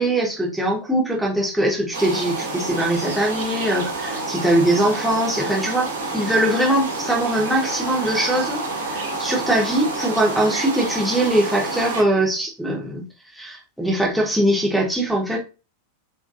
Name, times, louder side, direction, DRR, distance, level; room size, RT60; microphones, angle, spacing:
voice 1, 0.0-5.9 6.1-8.6 8.9-13.0 13.3-15.4, right 1 dB, ahead, -3 dB, 1.0 m, -21 dB
sound 1, 1.9-12.0, right 2 dB, 60° right, 0.8 m, -28 dB
3.0 x 2.4 x 2.7 m, 0.31 s
figure-of-eight pair, 90°, 0 cm